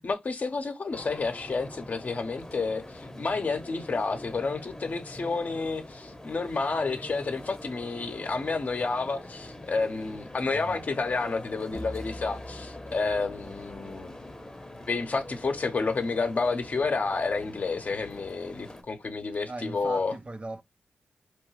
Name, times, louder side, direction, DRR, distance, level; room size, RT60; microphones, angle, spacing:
voice 1, 0.0-14.1 14.9-20.2, left 4 dB, 55° left, 0.7 m, -30 dB
sound 1, 0.9-18.8, left 1 dB, 20° left, 0.9 m, -44 dB
sound 2, 11.7-14.3, left 1 dB, 80° right, 1.0 m, -44 dB
voice 2, 19.5-20.6, right 2 dB, 35° right, 0.5 m, -39 dB
3.0 x 2.2 x 3.1 m
cardioid pair, 45°, 3 cm